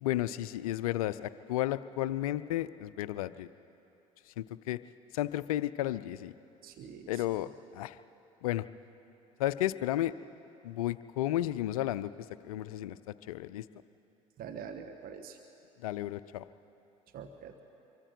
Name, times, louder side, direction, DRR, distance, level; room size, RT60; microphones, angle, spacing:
voice 1, 0.0-3.5 4.4-4.8 5.1-6.3 7.1-8.0 8.4-8.7 9.4-10.1 10.6-12.1 12.4-13.0 13.3-13.6 15.8-16.4, left 14 dB, 80° left, 15 dB, 0.5 m, -33 dB
voice 2, 6.6-7.2 14.4-15.4 17.1-17.6, right 7 dB, 55° right, 6 dB, 1.3 m, -45 dB
25.0 x 24.0 x 4.5 m, 2.9 s
hypercardioid pair, 60°, 18 cm